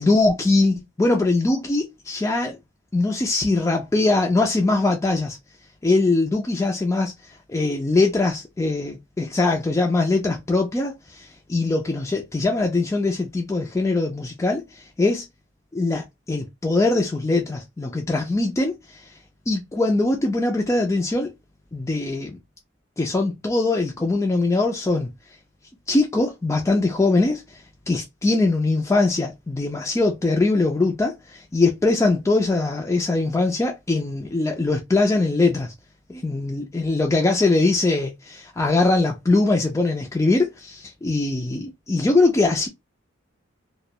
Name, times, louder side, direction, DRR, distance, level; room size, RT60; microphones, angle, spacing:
voice 1, 0.0-2.6 2.9-5.4 5.8-7.1 7.5-15.2 15.7-19.0 19.5-21.3 21.7-22.4 23.0-25.1 25.9-35.7 36.1-42.7, left 2 dB, 15° left, 0.3 m, -22 dB
2.3 x 2.1 x 2.7 m
head